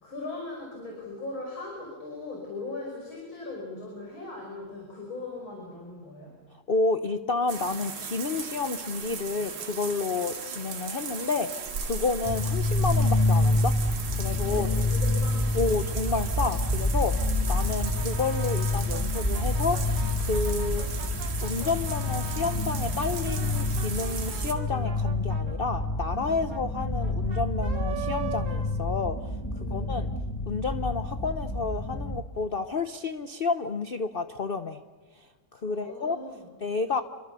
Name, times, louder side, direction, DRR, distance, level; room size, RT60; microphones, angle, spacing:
voice 1, 0.0-6.3 14.5-15.5 29.6-30.1 35.6-36.5, left 2 dB, 85° left, -1 dB, 6.3 m, -39 dB
voice 2, 6.7-13.8 14.1-14.7 15.5-21.0 21.4-30.1 30.5-34.8 35.1-36.2 36.6-37.0, left 4 dB, 50° left, 10 dB, 0.7 m, -30 dB
sound 1, 7.5-24.5, right 5 dB, 90° right, 2.8 m, -37 dB
sound 2, 12.2-32.2, left 2 dB, 15° left, 0.9 m, -28 dB
Brass instrument, 17.4-22.6 23.1-29.4, right 5 dB, 65° right, 3.2 m, -42 dB
27.5 x 25.0 x 6.9 m, 1.3 s
omnidirectional pair, 2.2 m